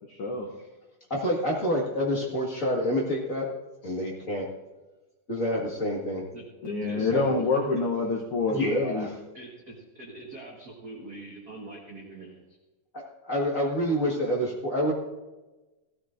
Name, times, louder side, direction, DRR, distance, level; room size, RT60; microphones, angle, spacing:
voice 1, 0.1-0.5 6.6-9.1, left 3 dB, 90° left, 0 dB, 1.2 m, -27 dB
voice 2, 1.1-3.4 3.8-4.5 5.3-6.2 6.9-7.4 8.5-9.1 12.9-14.9, equal, 35° left, -3 dB, 1.3 m, -28 dB
voice 3, 6.3-7.8 9.3-12.4, right 3 dB, 60° right, -2 dB, 1.0 m, -43 dB
16.5 x 13.5 x 2.5 m, 1.1 s
omnidirectional pair, 3.9 m